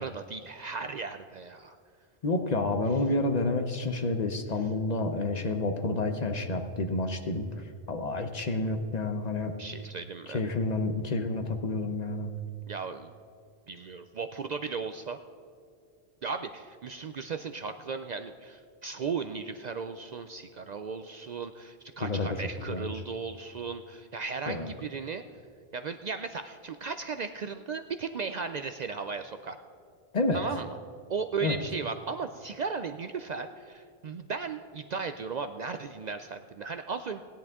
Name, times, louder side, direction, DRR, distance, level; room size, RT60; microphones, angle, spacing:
voice 1, 0.0-1.8 9.6-10.4 12.7-13.1 13.7-15.2 16.2-25.2 25.7-29.6 30.3-30.8 31.1-37.2, right 5 dB, 55° right, 8 dB, 0.5 m, -36 dB
voice 2, 2.2-9.5 10.3-12.3 22.0-22.3 22.6-22.9 24.5-24.7 30.1-30.4 31.4-31.6, left 2 dB, 45° left, 6 dB, 0.8 m, -29 dB
16.5 x 10.5 x 3.6 m, 2.3 s
omnidirectional pair, 1.0 m